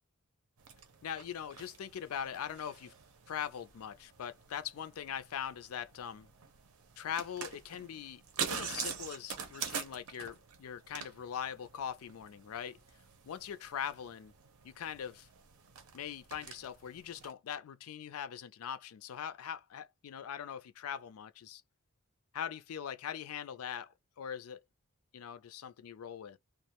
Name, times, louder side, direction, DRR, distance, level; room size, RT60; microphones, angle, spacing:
sound 1, 0.6-17.3, right 7 dB, 80° right, 0.7 m, -45 dB
voice 1, 1.0-2.9 3.3-6.3 7.0-12.8 13.3-14.3 14.6-15.3 15.9-21.6 22.3-24.6 25.1-26.4, left 8 dB, 75° left, 0.4 m, -41 dB
2.4 x 2.1 x 2.8 m
head